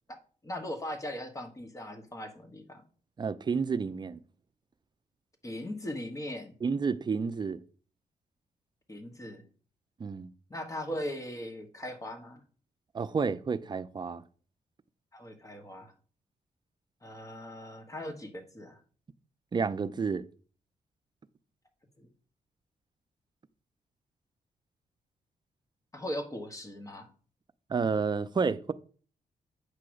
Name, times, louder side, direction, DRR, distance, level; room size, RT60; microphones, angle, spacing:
voice 1, 0.4-2.8 5.4-6.5 8.9-9.4 10.5-12.4 15.1-15.9 17.0-18.8 22.0-22.1 25.9-27.1, left 1 dB, 20° left, 1.3 m, -39 dB
voice 2, 3.2-4.2 6.6-7.6 10.0-10.3 12.9-14.2 19.5-20.3 27.7-28.7, right 5 dB, 30° right, 0.5 m, -30 dB
8.4 x 2.9 x 6.3 m
cardioid pair, 100°, 14 cm